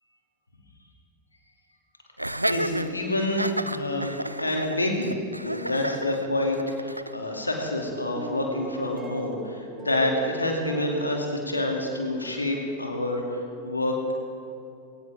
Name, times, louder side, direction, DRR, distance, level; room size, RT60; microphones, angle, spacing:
Laughter, 2.2-7.2, right 1 dB, 85° right, 0.4 m, -31 dB
voice 1, 2.5-5.2 5.4-14.1, left 1 dB, 80° left, 1 dB, 2.5 m, -28 dB
sound 1, 7.2-7.7 8.2-12.4, right 7 dB, 15° right, 0.9 m, -41 dB
21.0 x 18.0 x 3.6 m, 2.6 s
figure-of-eight pair, 90°, 0 cm